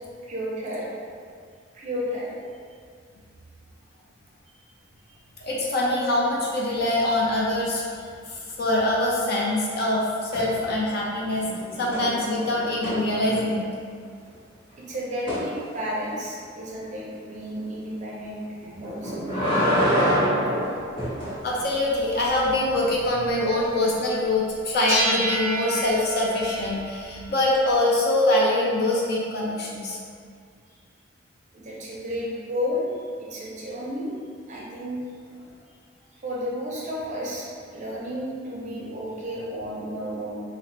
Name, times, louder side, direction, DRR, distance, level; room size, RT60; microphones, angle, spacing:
voice 1, 0.2-0.9 1.7-2.4 14.9-20.0 31.5-34.1 34.5-35.0 36.1-37.5 37.7-40.4, equal, 35° right, -5 dB, 0.5 m, -32 dB
voice 2, 5.4-7.9 8.3-11.5 11.8-13.7 21.4-30.0, left 1 dB, 50° left, -4 dB, 0.5 m, -24 dB
sound 1, 10.3-11.0 11.3-13.7 15.3-15.5 18.8-21.4 23.6-23.7, equal, 25° left, 0.8 m, -26 dB
sound 2, 24.9-28.0, right 1 dB, 75° left, 1.4 m, -30 dB
2.8 x 2.0 x 3.1 m, 2.2 s
head